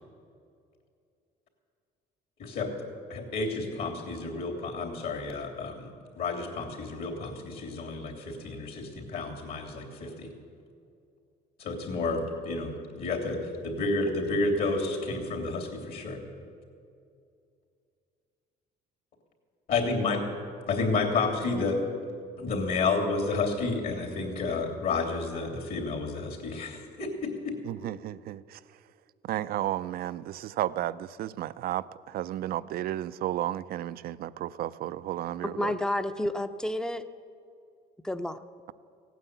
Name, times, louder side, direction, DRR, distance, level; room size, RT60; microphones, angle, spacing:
voice 1, 3.1-5.9 6.1-10.3 11.6-12.7 13.0-16.2 19.7-20.2 20.7-21.8 22.4-27.5, left 3 dB, 65° left, 1 dB, 3.2 m, -30 dB
voice 2, 27.6-28.6 29.2-35.7, right 13 dB, 60° right, 17 dB, 0.5 m, -33 dB
voice 3, 35.4-37.1 38.0-38.4, left 1 dB, 5° left, 10 dB, 0.6 m, -30 dB
16.5 x 9.3 x 8.1 m, 2.4 s
cardioid pair, 110°, 17 cm